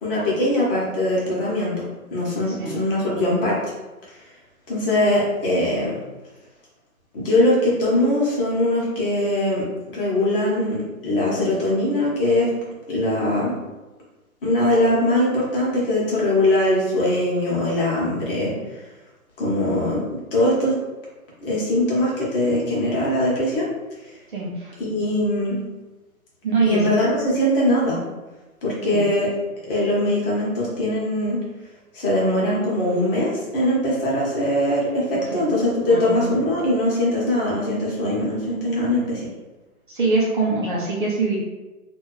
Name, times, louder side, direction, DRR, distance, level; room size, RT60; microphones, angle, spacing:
voice 1, 0.0-1.7 2.1-3.6 4.7-5.9 7.1-9.6 9.9-12.5 12.9-13.5 14.4-18.5 19.4-20.0 20.3-20.7 21.4-23.7 24.8-25.6 26.7-28.0 28.6-29.3 29.7-31.4 31.9-39.2, left 1 dB, 35° left, -5 dB, 1.2 m, -21 dB
voice 2, 2.5-2.8 24.3-24.8 26.4-27.0 28.9-29.1 35.3-36.3 39.9-41.4, right 3 dB, 35° right, -5 dB, 0.7 m, -24 dB
3.0 x 2.5 x 3.1 m, 1.1 s
hypercardioid pair, 150°, 45 cm